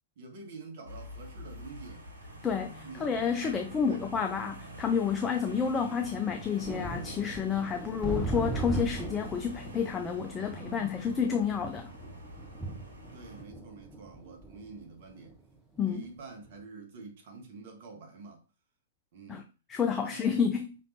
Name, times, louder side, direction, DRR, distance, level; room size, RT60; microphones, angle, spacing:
voice 1, 0.2-2.1 2.8-4.5 5.1-5.4 13.0-15.4 15.9-18.5 19.1-19.5 20.0-20.3, right 4 dB, 50° right, 1.2 m, -48 dB
sound 1, 0.8-13.4, right 1 dB, 75° right, 1.4 m, -46 dB
voice 2, 2.4-11.9 15.8-16.0 19.3-19.4 19.7-20.8, left 6 dB, 15° left, 0.4 m, -30 dB
sound 2, 6.2-16.1 16.4-16.6, right 2 dB, ahead, 0.9 m, -39 dB
5.1 x 3.1 x 2.7 m
figure-of-eight pair, 110°, 0 cm